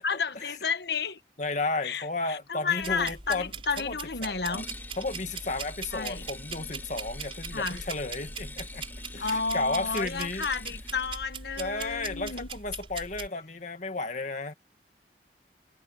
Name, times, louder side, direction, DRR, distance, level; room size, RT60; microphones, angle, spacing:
voice 1, 0.0-1.2 1.8-4.7 5.9-6.2 7.5-7.8 9.2-12.5, left 5 dB, 70° left, 1.2 m, -31 dB
voice 2, 1.4-3.5 3.8-4.6 5.0-8.9 9.1-10.5 11.6-14.5, left 3 dB, 45° left, 2.0 m, -33 dB
sound 1, 2.8-13.3, right 4 dB, 30° right, 6.6 m, -41 dB
sound 2, 4.5-11.1, left 2 dB, 10° left, 3.4 m, -46 dB
head